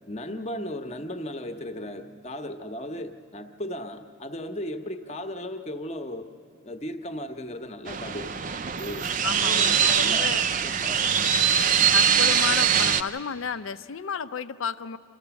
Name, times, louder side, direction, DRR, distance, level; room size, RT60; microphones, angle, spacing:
voice 1, 0.1-6.3 6.6-9.0 9.3-11.1, left 1 dB, 30° left, 7 dB, 0.8 m, -36 dB
sound 1, 7.9-13.0, right 8 dB, 40° right, 0.5 m, -22 dB
voice 2, 9.2-10.5 11.9-15.0, left 6 dB, 75° left, 13 dB, 0.5 m, -32 dB
27.0 x 14.0 x 7.0 m, 2.4 s
head